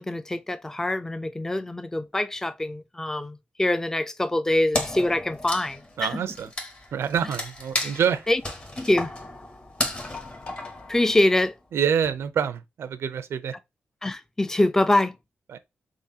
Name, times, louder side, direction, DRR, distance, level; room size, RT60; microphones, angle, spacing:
voice 1, 0.0-6.2 8.3-8.4 8.8-9.1 10.9-11.5 14.0-15.1, left 1 dB, 10° left, 0.4 m, -24 dB
Wood, 4.7-11.4, left 2 dB, 30° left, 0.9 m, -33 dB
voice 2, 6.0-6.5 6.9-8.3 11.7-13.5 15.5-15.6, right 8 dB, 85° right, 0.5 m, -26 dB
3.8 x 3.6 x 2.7 m
wide cardioid pair, 120°, 4 cm